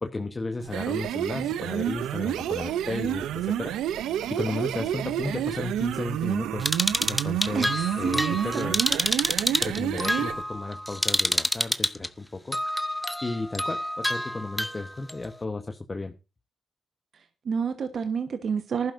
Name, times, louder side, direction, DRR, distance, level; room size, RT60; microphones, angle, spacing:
voice 1, 0.0-3.8 4.3-6.7 7.1-8.8 9.2-12.6 13.2-16.1, left 3 dB, 30° left, 6 dB, 1.2 m, -34 dB
sound 1, 0.6-10.4, right 11 dB, 90° right, 0.6 m, -29 dB
sound 2, 6.6-12.1 12.5-15.1, equal, 5° left, 1.0 m, -27 dB
voice 2, 8.0-9.0 9.5-9.6 17.4-18.9, right 6 dB, 65° right, 9 dB, 1.2 m, -29 dB
19.5 x 11.5 x 2.6 m, 0.27 s
cardioid pair, 60°, 0 cm